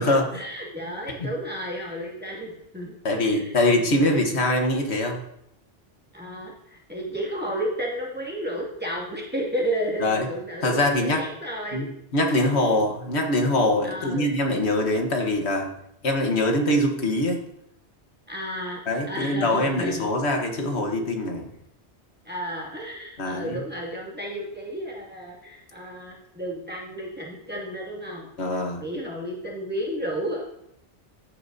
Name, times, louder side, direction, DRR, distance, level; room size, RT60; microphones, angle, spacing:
voice 1, 0.0-3.5 3.9-4.2 6.1-11.9 12.4-12.5 13.8-14.3 18.3-18.8 19.1-20.0 22.2-28.3 28.8-30.4, equal, 10° right, -4 dB, 2.3 m, -32 dB
voice 2, 3.1-5.2 10.0-10.3 10.6-11.2 11.7-11.9 12.1-15.7 16.0-17.4 18.9-21.5 23.2-23.6 28.4-28.8, left 1 dB, 75° left, 2 dB, 1.6 m, -23 dB
14.0 x 8.6 x 2.7 m, 0.76 s
omnidirectional pair, 1.1 m